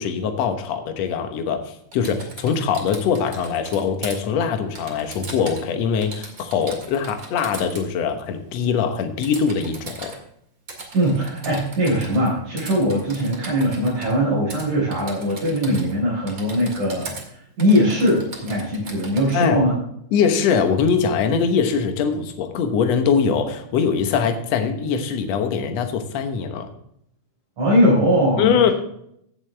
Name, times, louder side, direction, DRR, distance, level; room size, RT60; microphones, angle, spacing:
voice 1, 0.0-10.1 19.3-19.6 20.1-26.7 28.4-28.7, left 6 dB, 65° left, 7 dB, 2.2 m, -22 dB
Typing, 1.9-4.2 4.8-5.7 6.0-7.9 9.2-10.2 10.7-12.3 12.6-14.1 14.5-14.7 14.9-16.0 16.3-17.2 17.6-19.5, right 3 dB, 30° right, 2.3 m, -38 dB
voice 2, 10.9-17.2 17.6-19.8 27.6-28.7, equal, 85° right, -7 dB, 6.0 m, -20 dB
16.0 x 7.4 x 3.3 m, 0.72 s
omnidirectional pair, 3.3 m